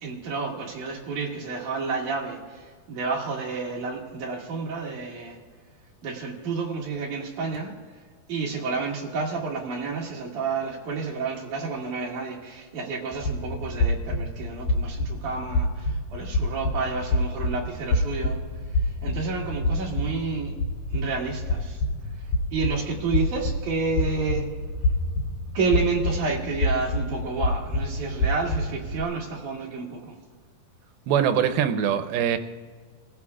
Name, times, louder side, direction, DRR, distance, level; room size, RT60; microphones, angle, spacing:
voice 1, 0.0-5.4 6.0-7.7 8.3-18.4 18.7-20.5 20.9-21.8 22.2-24.5 25.5-30.2, right 4 dB, 60° right, -2 dB, 3.1 m, -30 dB
sound 1, 13.1-29.0, left 1 dB, 65° left, 2.2 m, -28 dB
voice 2, 31.1-32.4, right 9 dB, 90° right, 8 dB, 2.6 m, -22 dB
29.0 x 16.0 x 2.4 m, 1.5 s
omnidirectional pair, 4.3 m